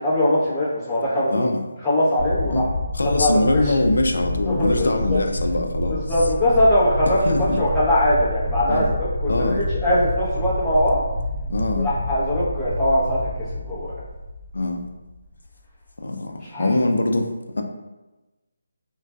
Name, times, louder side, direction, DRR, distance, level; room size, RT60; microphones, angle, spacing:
voice 1, 0.0-1.5 1.8-2.6 3.0-3.7 4.5-5.2 5.9-11.0 11.8-13.2 13.5-13.9 16.4-16.7, left 1 dB, 10° left, -12 dB, 0.8 m, -21 dB
voice 2, 1.3-1.6 2.5-2.6 2.9-6.0 7.2-7.6 8.7-8.9 9.3-9.6 11.5-11.9 14.5-14.8 16.0-17.6, left 2 dB, 80° left, 4 dB, 0.3 m, -22 dB
sound 1, 2.2-15.2, left 1 dB, 85° right, 0.6 m, -28 dB
2.4 x 2.2 x 2.3 m, 1.1 s
figure-of-eight pair, 160°, 0 cm